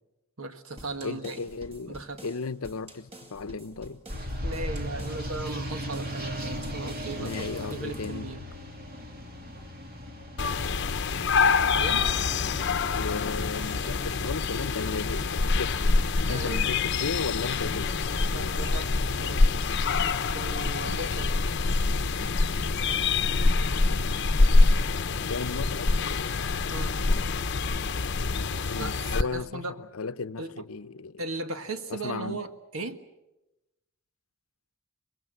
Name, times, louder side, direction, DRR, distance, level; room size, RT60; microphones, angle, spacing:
voice 1, 0.4-1.4 1.9-2.3 4.4-8.4 11.7-12.1 16.3-16.7 18.3-19.6 20.3-21.3 26.7-27.0 28.8-28.9 29.2-29.7 30.4-30.5 31.2-33.0, right 2 dB, 80° right, 1.7 m, -37 dB
sound 1, 0.8-8.3, right 1 dB, 30° right, 2.3 m, -48 dB
voice 2, 1.0-4.0 7.2-8.3 13.0-15.8 16.3-17.9 23.6-23.7 25.3-25.9 28.7-31.2 31.9-32.4, left 4 dB, 90° left, 0.8 m, -35 dB
sound 2, 4.1-15.9, equal, 45° right, 3.1 m, -38 dB
sound 3, 10.4-29.2, left 3 dB, 55° left, 0.8 m, -25 dB
25.0 x 22.0 x 7.9 m
head